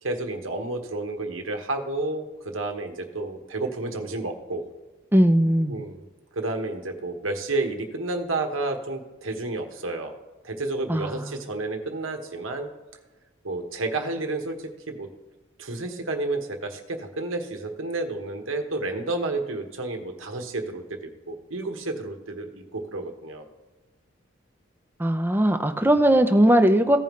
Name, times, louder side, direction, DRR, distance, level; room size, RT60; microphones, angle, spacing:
voice 1, 0.0-4.6 5.7-6.0 6.3-10.1 10.4-12.7 13.4-15.1 15.6-23.4, right 2 dB, 90° right, 5 dB, 1.3 m, -31 dB
voice 2, 5.1-5.8 10.9-11.3 25.0-27.0, right 1 dB, 10° right, 6 dB, 0.6 m, -19 dB
15.5 x 5.3 x 3.2 m, 1.2 s
head